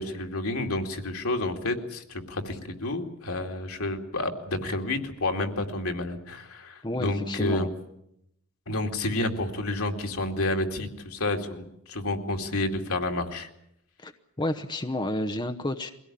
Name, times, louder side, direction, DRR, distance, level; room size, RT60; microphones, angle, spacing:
voice 1, 0.0-7.7 8.7-13.5, left 2 dB, 85° left, 4 dB, 2.5 m, -30 dB
voice 2, 6.8-7.7 14.0-14.1 14.4-15.9, left 1 dB, 20° left, 7 dB, 0.9 m, -30 dB
22.5 x 17.0 x 10.0 m, 0.79 s
head